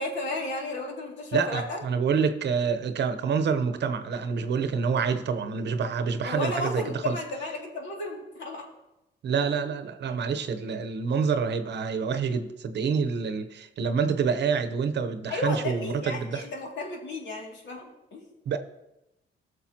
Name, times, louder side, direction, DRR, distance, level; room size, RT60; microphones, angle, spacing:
voice 1, 0.0-1.8 6.2-8.7 15.3-18.3, left 2 dB, 65° left, 2.5 m, -33 dB
voice 2, 1.3-7.2 9.2-16.5 18.5-18.6, right 6 dB, 60° right, 0.9 m, -27 dB
17.5 x 6.7 x 2.9 m
cardioid pair, 90°, 20 cm